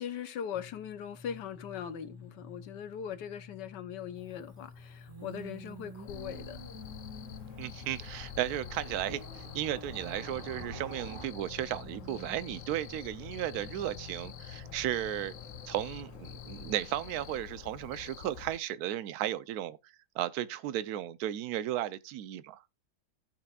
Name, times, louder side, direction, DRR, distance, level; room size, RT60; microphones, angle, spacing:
voice 1, 0.0-6.6, left 8 dB, 80° left, 1.5 m, -40 dB
Singing with the station, 0.5-16.8, left 1 dB, 15° right, 1.5 m, -50 dB
Cricket / Motor vehicle (road), 4.2-11.3, right 3 dB, 30° right, 1.7 m, -52 dB
Cricket, 6.1-18.6, left 9 dB, 60° left, 0.9 m, -47 dB
voice 2, 7.6-15.3 15.7-19.8 20.1-22.6, right 12 dB, 70° right, 1.1 m, -35 dB
16.0 x 6.0 x 2.4 m
omnidirectional pair, 1.8 m